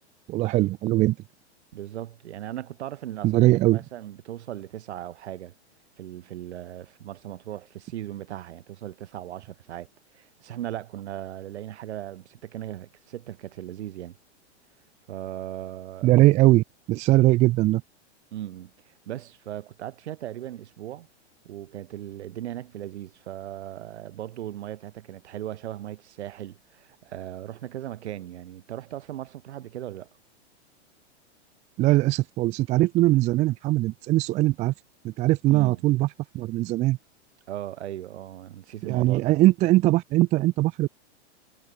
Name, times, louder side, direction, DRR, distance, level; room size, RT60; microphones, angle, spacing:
voice 1, 0.3-1.2 3.2-3.8 16.0-17.8 31.8-34.7 35.0-36.1 36.3-37.0 38.8-40.9, right 17 dB, 20° right, 0.4 m, -21 dB
voice 2, 1.7-5.5 6.0-14.2 15.1-16.1 18.3-21.1 21.4-30.1 35.5-35.8 37.5-39.3, right 12 dB, 75° right, 3.1 m, -38 dB
hypercardioid pair, 135°, 34 cm